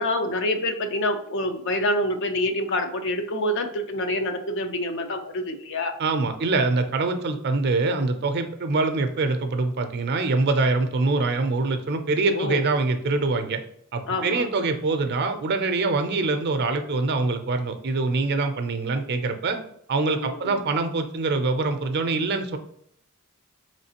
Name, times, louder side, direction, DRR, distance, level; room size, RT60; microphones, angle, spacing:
voice 1, 0.0-6.0 12.3-12.6 14.1-14.5 20.1-20.6, left 1 dB, 55° left, 6 dB, 0.5 m, -27 dB
voice 2, 6.0-13.6 13.9-19.6 19.9-22.6, right 3 dB, 50° right, 7 dB, 0.5 m, -24 dB
4.7 x 3.2 x 2.8 m, 0.70 s
head